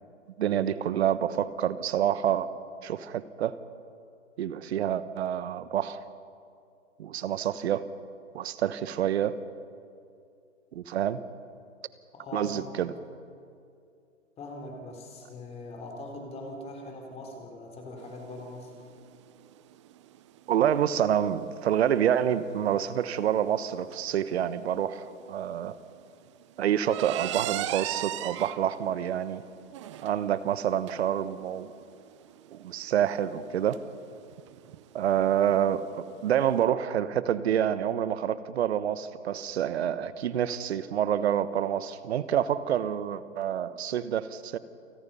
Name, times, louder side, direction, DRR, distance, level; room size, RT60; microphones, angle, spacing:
voice 1, 0.4-2.5 2.8-3.6 4.4-6.0 7.0-7.9 8.3-9.3 10.7-11.2 12.3-12.9 20.5-25.7 26.6-29.4 30.0-31.7 32.5-33.8 34.9-44.6, right 10 dB, 55° right, 14 dB, 1.2 m, -27 dB
voice 2, 12.1-12.9 14.4-18.7, left 2 dB, 15° left, 1 dB, 3.7 m, -41 dB
sound 1, 18.0-36.6, right 13 dB, 25° right, 0.5 m, -41 dB
29.0 x 20.0 x 5.6 m, 2.4 s
hypercardioid pair, 145°, 37 cm